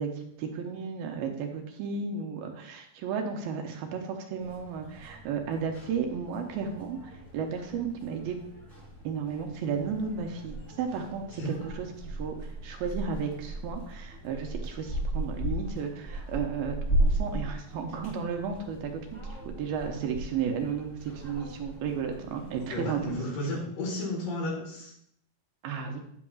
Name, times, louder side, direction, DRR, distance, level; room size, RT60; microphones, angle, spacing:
voice 1, 0.0-8.5 9.0-23.2 25.6-26.0, right 6 dB, 80° right, 3 dB, 2.5 m, -34 dB
sound 1, 4.4-23.2, right 1 dB, 15° left, 2.1 m, -36 dB
voice 2, 22.7-24.9, left 1 dB, 65° left, -1 dB, 3.0 m, -33 dB
8.9 x 8.5 x 2.3 m, 0.70 s
omnidirectional pair, 4.3 m